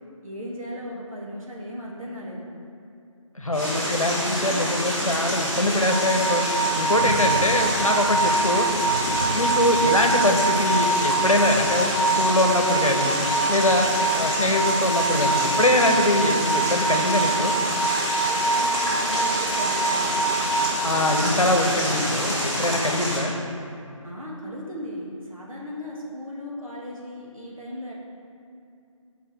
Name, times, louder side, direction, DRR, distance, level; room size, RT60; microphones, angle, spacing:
voice 1, 0.2-2.4 8.8-9.2 18.3-20.3 24.0-27.9, equal, 85° right, -4 dB, 1.8 m, -37 dB
voice 2, 3.3-6.4 6.8-8.7 9.3-11.9 12.2-13.2 13.5-17.5 20.8-23.3, left 1 dB, 80° left, 3 dB, 1.0 m, -23 dB
sound 1, 3.5-23.2, equal, 5° right, 1.5 m, -27 dB
sound 2, 5.9-21.0, right 3 dB, 30° right, 0.6 m, -25 dB
9.7 x 5.4 x 3.3 m, 2.6 s
figure-of-eight pair, 155°, 17 cm